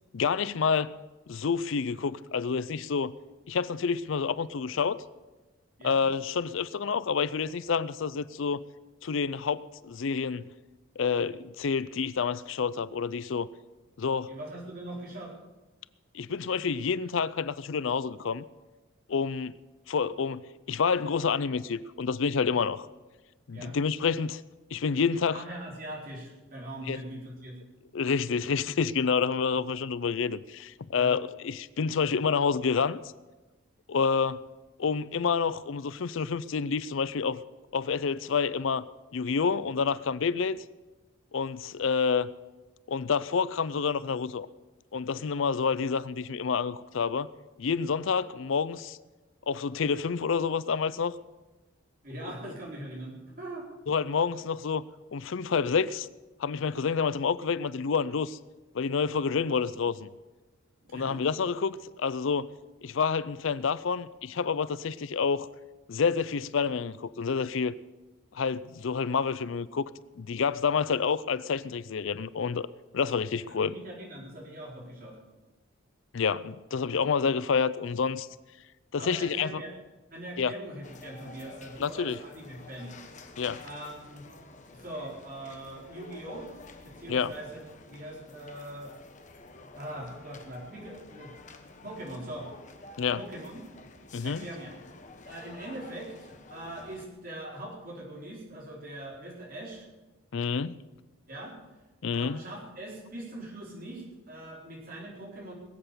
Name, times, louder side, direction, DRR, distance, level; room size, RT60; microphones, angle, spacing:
voice 1, 0.1-0.9 1.3-3.1 3.5-5.0 5.8-8.6 9.0-10.5 11.0-13.5 14.0-14.3 16.1-18.4 19.1-19.5 19.9-22.9 23.5-24.4 24.7-25.4 26.9-27.0 27.9-33.0 33.9-34.4 34.8-37.4 37.7-38.8 39.1-40.6 41.3-42.3 42.9-44.5 44.9-47.3 47.6-49.0 49.5-51.2 53.9-54.8 55.1-56.1 56.4-58.4 58.7-60.1 60.9-62.5 62.8-65.5 65.9-67.8 68.3-69.9 70.2-72.7 72.9-73.7 76.1-78.3 78.9-79.6 80.4-80.5 81.8-82.2 83.4-83.6 87.1-87.3 93.0-93.2 94.1-94.5 100.3-100.8 102.0-102.4, left 5 dB, 70° left, 0.5 m, -28 dB
voice 2, 14.3-15.3 23.5-23.7 25.3-27.6 31.0-31.2 52.0-53.7 60.8-61.2 73.5-75.2 79.0-79.7 80.1-82.9 83.6-84.2 84.7-86.5 86.8-87.6 87.9-89.0 89.7-91.3 91.8-92.5 93.1-93.6 94.2-94.7 95.3-99.8 101.3-101.5 102.1-105.5, right 1 dB, 45° right, 4.1 m, -41 dB
sound 1, 80.8-97.1, left 3 dB, 35° left, 1.1 m, -50 dB
20.5 x 8.0 x 6.8 m
head